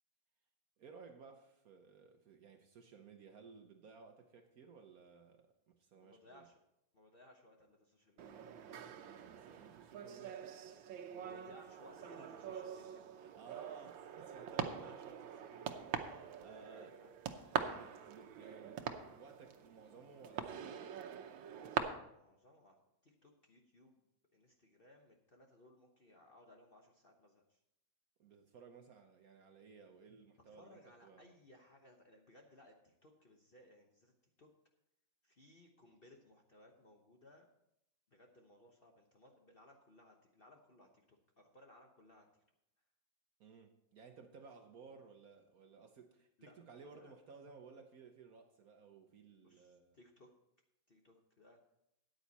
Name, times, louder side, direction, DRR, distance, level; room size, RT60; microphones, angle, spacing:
voice 1, 0.8-6.5 9.0-10.6 13.2-17.0 17.5-21.0 28.2-31.3 43.4-50.0, right 5 dB, 60° right, 1.1 m, -58 dB
voice 2, 6.0-6.6 6.9-8.3 11.1-13.0 16.4-17.1 21.5-22.8 23.0-24.0 24.3-27.6 30.4-34.1 34.4-34.5 35.2-37.5 38.1-42.3 46.4-46.6 46.9-47.1 49.4-50.3 50.9-51.6, left 1 dB, 35° left, 1.0 m, -62 dB
sound 1, 8.2-21.8, right 8 dB, 80° right, 1.6 m, -44 dB
13.5 x 9.3 x 4.1 m
omnidirectional pair, 2.1 m